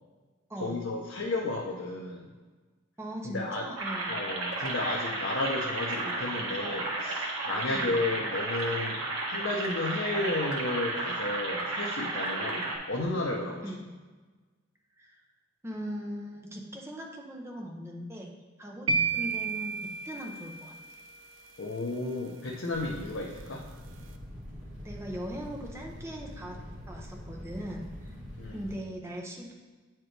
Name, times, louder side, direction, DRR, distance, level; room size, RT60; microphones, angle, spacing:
voice 1, 0.6-2.3 3.2-3.7 4.1-9.0 9.3-13.6 21.6-23.6 28.4-28.6, left 2 dB, 70° left, -2 dB, 0.7 m, -33 dB
voice 2, 3.0-4.1 7.7-7.9 13.6-13.8 15.0-15.2 15.6-18.3 18.6-19.8 20.0-20.7 24.8-26.6 26.9-28.1 28.5-29.5, equal, 15° right, 0 dB, 0.7 m, -39 dB
sound 1, 3.8-12.8, right 2 dB, 90° right, 1.4 m, -33 dB
sound 2, 18.9-21.0, right 4 dB, 70° right, 0.5 m, -31 dB
sound 3, 22.7-28.7, equal, 40° right, 1.8 m, -44 dB
8.8 x 4.5 x 3.3 m, 1.3 s
head